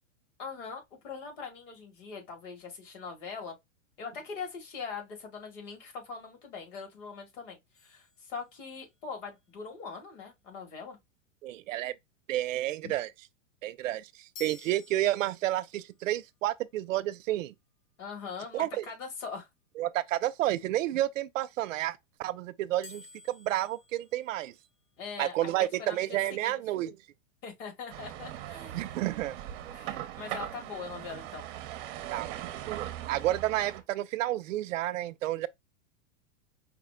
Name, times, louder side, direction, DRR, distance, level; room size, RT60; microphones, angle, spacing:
voice 1, 0.4-3.6 4.0-11.0 12.8-13.0 18.0-19.5 25.0-25.5 25.8-26.6 27.4-29.0 29.7-31.5, left 5 dB, 70° left, 2.4 m, -42 dB
sound 1, 7.7-9.0 14.3-15.8 22.8-25.0, left 5 dB, 45° left, 1.0 m, -53 dB
voice 2, 11.4-11.9 12.3-13.1 13.6-17.5 18.5-18.9 19.8-24.5 25.2-27.0 28.7-29.4 32.1-35.5, right 14 dB, 80° right, 0.6 m, -31 dB
sound 2, 27.9-33.8, right 12 dB, 40° right, 0.7 m, -40 dB
4.9 x 2.1 x 3.6 m
supercardioid pair, 150°, 38 cm